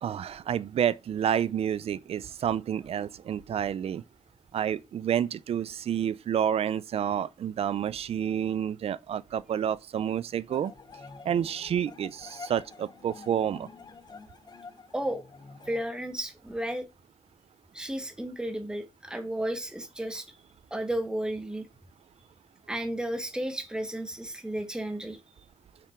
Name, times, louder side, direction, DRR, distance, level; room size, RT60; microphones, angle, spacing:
voice 1, 0.0-4.0 4.5-10.7 11.2-13.7, right 9 dB, 75° right, 0.6 m, -29 dB
sound 1, 10.5-15.8, left 4 dB, 40° left, 1.1 m, -48 dB
voice 2, 15.7-16.8 17.7-20.4 20.7-21.7 22.7-25.2, right 1 dB, 5° right, 1.6 m, -33 dB
8.7 x 5.9 x 4.5 m
wide cardioid pair, 150°, 10 cm